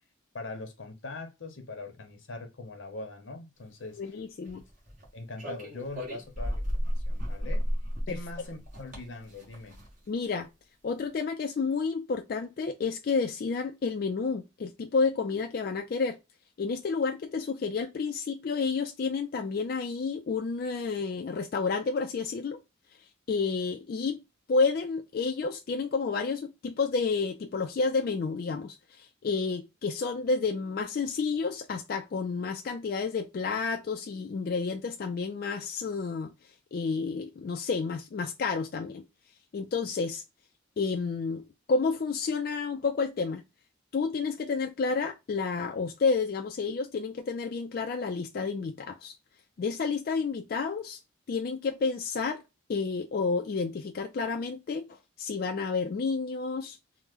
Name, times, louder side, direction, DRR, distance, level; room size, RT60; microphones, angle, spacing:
voice 1, 0.3-4.2 5.1-7.7 8.1-9.8, left 3 dB, 90° left, 0.8 m, -42 dB
voice 2, 4.0-4.6 8.1-8.2 10.1-10.5 10.8-16.2 16.6-22.6 23.3-24.2 24.5-36.3 36.7-39.0 39.5-40.2 40.8-43.4 43.9-49.1 49.6-51.0 51.3-52.4 52.7-54.9 55.2-56.8, left 4 dB, 50° left, 0.3 m, -30 dB
sound 1, 4.4-5.1 5.4-10.1, equal, 45° right, 1.2 m, -33 dB
2.9 x 2.1 x 3.5 m
head